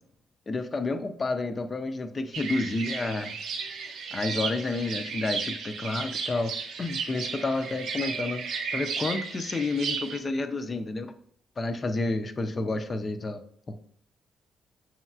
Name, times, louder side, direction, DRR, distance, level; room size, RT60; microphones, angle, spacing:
voice 1, 0.5-3.4 4.1-6.5 6.8-8.4 8.7-11.1 11.6-13.4 13.7-13.8, left 3 dB, 35° left, 8 dB, 0.5 m, -30 dB
sound 1, 2.3-10.2, right 5 dB, 60° right, 0.5 m, -34 dB
7.0 x 3.1 x 2.3 m, 0.62 s
figure-of-eight pair, 40°, 0 cm